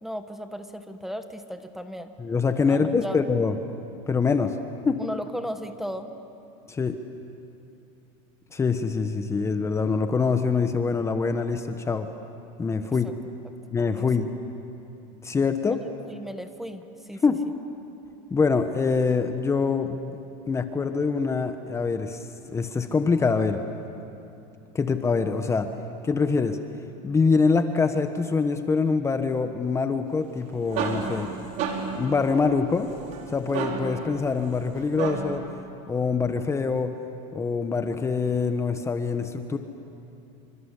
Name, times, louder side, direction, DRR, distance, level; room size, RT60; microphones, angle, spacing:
voice 1, 0.0-2.1 2.7-3.2 5.0-6.1 13.0-13.1 14.0-14.1 15.7-15.8 16.1-17.2, equal, ahead, 8 dB, 1.3 m, -35 dB
voice 2, 2.2-3.5 4.1-4.6 4.8-5.0 6.7-7.0 8.5-12.1 12.6-13.1 13.7-14.3 15.2-15.8 17.2-17.4 18.3-20.2 20.5-23.6 24.7-25.7 26.0-26.6 27.0-31.3 32.0-32.9 33.3-35.4 35.9-36.9 37.3-39.6, left 4 dB, 20° left, 8 dB, 1.2 m, -24 dB
sound 1, 30.3-35.5, right 5 dB, 55° right, 4.0 m, -33 dB
27.0 x 25.0 x 8.4 m, 2.7 s
supercardioid pair, 130°, 16 cm